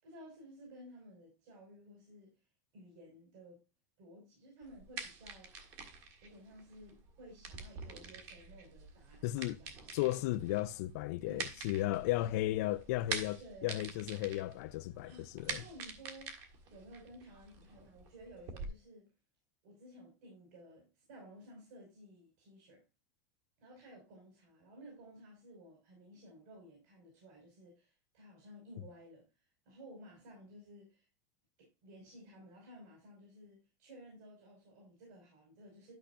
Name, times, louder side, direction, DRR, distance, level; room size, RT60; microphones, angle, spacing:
voice 1, 0.0-2.3 2.7-3.6 4.0-5.7 6.2-9.8 11.2-11.5 11.8-12.0 13.4-13.8 14.2-14.3 15.1-19.1 19.6-22.8 23.6-29.2 29.6-31.0 31.6-35.9, equal, 65° right, 5.1 m, -55 dB
sound 1, 4.6-18.7, right 5 dB, 40° right, 1.8 m, -46 dB
voice 2, 9.2-9.6 9.9-15.6, left 16 dB, 60° left, 0.4 m, -35 dB
12.0 x 5.8 x 2.5 m
supercardioid pair, 175°, 10 cm